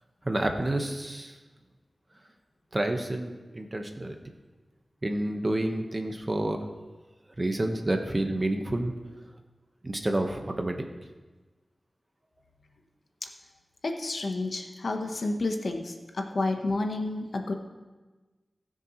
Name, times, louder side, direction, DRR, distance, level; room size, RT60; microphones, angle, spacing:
voice 1, 0.2-1.4 2.7-4.2 5.0-6.6 7.4-8.9 9.8-10.8, right 1 dB, 35° right, 4 dB, 1.2 m, -29 dB
voice 2, 13.8-17.5, left 2 dB, 70° left, 4 dB, 1.1 m, -30 dB
19.5 x 6.7 x 3.1 m, 1.2 s
wide cardioid pair, 60°, 0 cm